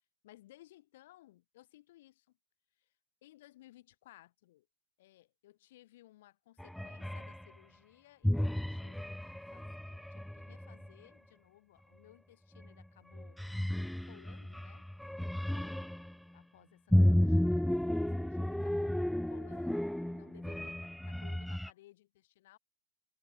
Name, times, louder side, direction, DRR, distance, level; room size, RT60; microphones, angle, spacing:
voice 1, 0.2-2.4 2.8-2.9 3.2-4.7 5.0-13.4 14.0-14.9 15.5-15.9 16.3-18.9 19.3-22.6, left 15 dB, 55° left, 2.0 m, -60 dB
sound 1, 6.6-7.4 8.2-10.9 12.5-12.8 13.1-16.1 16.9-21.7, left 1 dB, ahead, 0.3 m, -33 dB
figure-of-eight pair, 90°, 0 cm